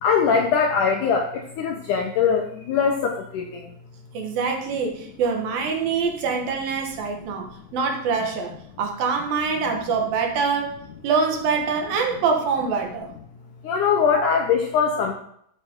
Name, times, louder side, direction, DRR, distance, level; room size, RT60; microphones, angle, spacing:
voice 1, 0.0-3.7 13.6-15.1, left 6 dB, 75° left, 2 dB, 1.9 m, -22 dB
voice 2, 4.1-10.8 11.0-13.1 14.1-14.2, right 5 dB, 70° right, 3 dB, 3.0 m, -25 dB
13.0 x 7.7 x 3.7 m, 0.69 s
omnidirectional pair, 4.6 m